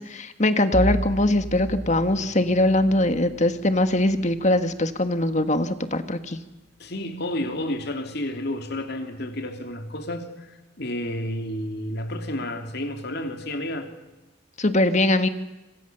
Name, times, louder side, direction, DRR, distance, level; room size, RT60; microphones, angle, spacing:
voice 1, 0.1-6.4 14.6-15.3, left 1 dB, 35° left, 10 dB, 1.5 m, -21 dB
Bowed string instrument, 0.7-5.8, equal, 55° right, 2.7 m, -34 dB
voice 2, 6.8-13.9, left 1 dB, 50° left, 6 dB, 3.0 m, -31 dB
26.5 x 26.0 x 7.0 m, 1.0 s
head